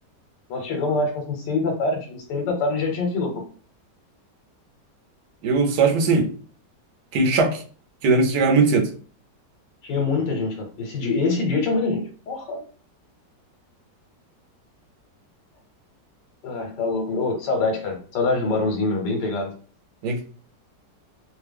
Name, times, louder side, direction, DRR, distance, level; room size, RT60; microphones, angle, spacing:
voice 1, 0.5-3.4 9.8-12.6 16.4-19.5, left 3 dB, 75° left, 2 dB, 1.3 m, -25 dB
voice 2, 5.4-6.3 7.1-7.6 8.0-8.9 20.0-20.2, right 4 dB, 70° right, 3 dB, 1.1 m, -19 dB
3.1 x 2.2 x 3.3 m, 0.41 s
omnidirectional pair, 1.9 m